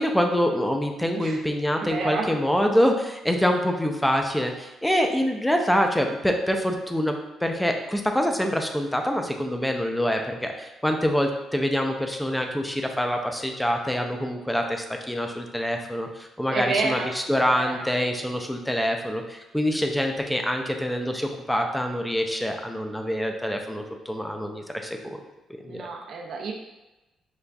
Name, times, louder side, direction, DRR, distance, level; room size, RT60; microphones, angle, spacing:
voice 1, 0.0-25.2 25.6-25.8, equal, 5° left, 4 dB, 0.5 m, -25 dB
voice 2, 1.7-2.3 16.5-17.1 17.4-17.9 25.6-26.5, right 4 dB, 70° right, 0 dB, 0.6 m, -29 dB
5.3 x 2.3 x 2.3 m, 1.0 s
cardioid pair, 90°, 0 cm